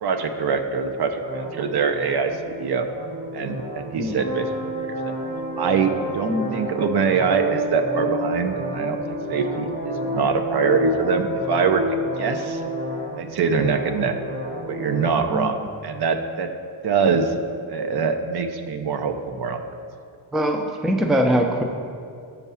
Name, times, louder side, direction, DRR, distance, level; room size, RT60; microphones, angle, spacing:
voice 1, 0.0-2.9 3.3-5.1 5.6-9.0 9.3-11.8 12.2-12.6 13.2-14.2 14.7-16.5 16.8-17.3 17.7-19.6, right 5 dB, 55° right, 7 dB, 0.6 m, -24 dB
sound 1, 1.1-15.1, equal, 75° right, 1.3 m, -30 dB
voice 2, 20.3-21.6, equal, ahead, 3 dB, 0.4 m, -22 dB
7.1 x 4.7 x 5.5 m, 2.3 s
cardioid pair, 115°, 47 cm